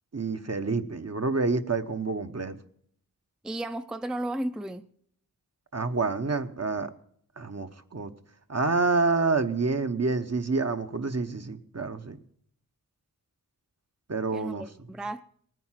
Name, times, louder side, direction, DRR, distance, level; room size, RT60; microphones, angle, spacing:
voice 1, 0.1-2.6 5.7-6.9 7.4-8.1 8.5-12.2 14.1-14.6, right 3 dB, 45° right, 1.0 m, -28 dB
voice 2, 3.4-4.9 14.3-15.2, right 1 dB, ahead, 0.5 m, -34 dB
19.5 x 9.3 x 5.8 m
wide cardioid pair, 60°, 36 cm